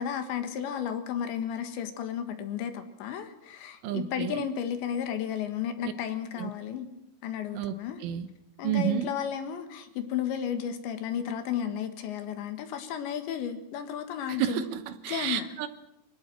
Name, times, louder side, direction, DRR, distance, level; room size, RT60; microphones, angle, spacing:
voice 1, 0.0-6.9 7.2-8.0 8.6-14.6 15.1-15.5, left 9 dB, 70° left, 8 dB, 3.6 m, -33 dB
voice 2, 3.8-4.5 5.8-5.9 6.4-6.5 7.6-7.8 8.0-8.3 8.6-9.1 14.3-15.7, right 11 dB, 80° right, 11 dB, 3.6 m, -30 dB
25.0 x 18.0 x 7.8 m, 0.84 s
omnidirectional pair, 5.8 m